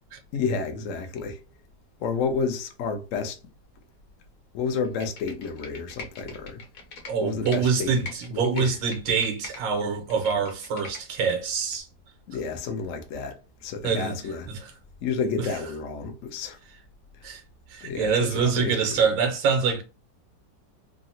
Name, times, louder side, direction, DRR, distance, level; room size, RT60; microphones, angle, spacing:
voice 1, 0.3-1.4 2.0-3.4 4.5-6.6 7.2-8.7 12.3-14.5 15.0-16.6 17.8-18.1 18.4-19.0, left 5 dB, 75° left, 0.7 m, -30 dB
Computer keyboard, 4.8-7.6 7.9-9.6 9.9-11.3 11.7-11.8, left 4 dB, 60° left, 1.1 m, -42 dB
voice 2, 7.1-11.9 13.8-14.2 14.5-14.6 15.4-15.5 17.2-17.4 17.7-19.8, right 5 dB, 85° right, 1.5 m, -25 dB
3.7 x 2.0 x 2.6 m
omnidirectional pair, 2.0 m